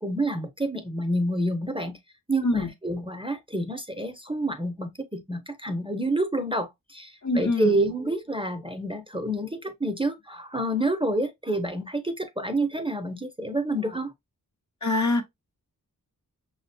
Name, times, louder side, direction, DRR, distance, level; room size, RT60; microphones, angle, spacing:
voice 1, 0.0-2.0 2.3-14.1, right 1 dB, 15° right, 0.5 m, -28 dB
voice 2, 7.2-7.8 14.8-15.2, left 2 dB, 50° left, 0.8 m, -24 dB
5.9 x 2.1 x 2.6 m
wide cardioid pair, 75°, 37 cm